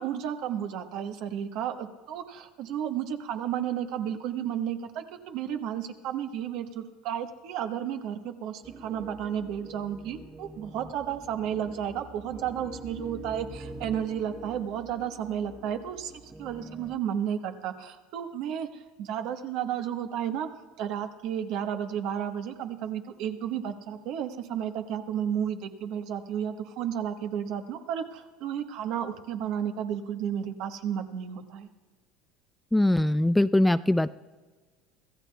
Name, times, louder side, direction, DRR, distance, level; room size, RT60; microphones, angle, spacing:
voice 1, 0.0-16.1 16.4-20.5 20.8-31.7, right 9 dB, 65° right, 6 dB, 1.2 m, -32 dB
sound 1, 8.6-16.9, right 1 dB, 10° right, 1.0 m, -45 dB
voice 2, 32.7-34.1, left 1 dB, 5° left, 14 dB, 0.3 m, -22 dB
25.5 x 15.0 x 2.3 m, 1.4 s
supercardioid pair, 90°, 0 cm